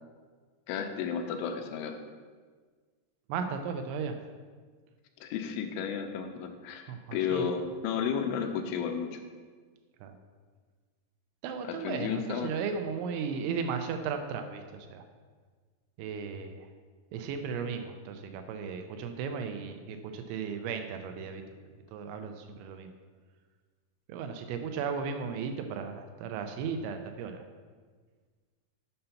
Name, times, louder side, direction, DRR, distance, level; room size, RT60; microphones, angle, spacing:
voice 1, 0.7-2.0 5.2-6.8 7.1-9.2 11.6-12.5, left 7 dB, 85° left, 5 dB, 3.0 m, -32 dB
voice 2, 3.3-4.2 6.9-7.4 10.0-10.1 11.4-15.0 16.0-16.7 17.1-21.4 21.9-22.9 24.1-27.4, right 6 dB, 80° right, 6 dB, 3.0 m, -35 dB
7.8 x 5.6 x 5.7 m, 1.5 s
omnidirectional pair, 5.5 m